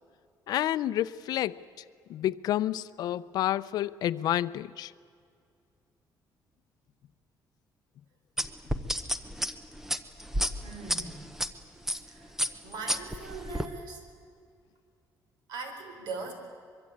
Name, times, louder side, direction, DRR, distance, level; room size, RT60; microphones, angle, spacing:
voice 1, 0.5-1.6 2.1-4.9, left 12 dB, 65° left, 0.6 m, -29 dB
sound 1, 8.4-11.5 11.9-12.1 12.4-13.7, equal, 5° right, 0.8 m, -30 dB
voice 2, 10.6-11.3 12.1-12.4 12.6-14.1 15.5-16.3, right 3 dB, 75° right, 4.6 m, -40 dB
24.0 x 23.0 x 8.6 m
cardioid pair, 175°, 7 cm